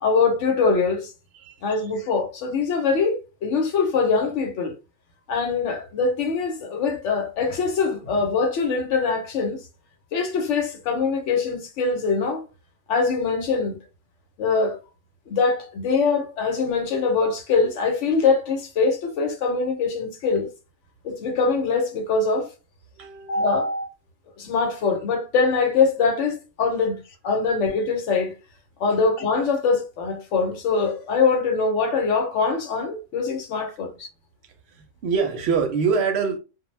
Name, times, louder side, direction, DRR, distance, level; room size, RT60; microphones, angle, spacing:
voice 1, 0.0-1.1 1.6-4.7 5.3-9.6 10.1-12.4 12.9-13.8 14.4-14.8 15.3-20.5 21.0-22.5 23.3-23.9 24.4-28.3 28.8-34.1, left 4 dB, 70° left, 0.9 m, -23 dB
voice 2, 23.0-23.5 35.0-36.4, right 5 dB, 65° right, 0.8 m, -24 dB
2.2 x 2.0 x 3.1 m
omnidirectional pair, 1.3 m